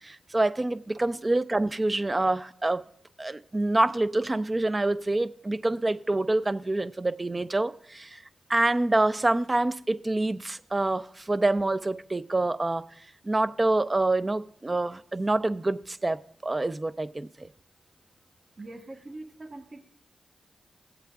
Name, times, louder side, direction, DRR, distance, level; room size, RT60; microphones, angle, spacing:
voice 1, 0.0-2.8 3.2-8.2 8.5-12.8 13.2-17.5, right 2 dB, 30° right, 0.5 m, -26 dB
voice 2, 18.6-19.8, right 2 dB, 45° right, 1.3 m, -42 dB
16.5 x 8.0 x 2.4 m
supercardioid pair, 40°, 0 cm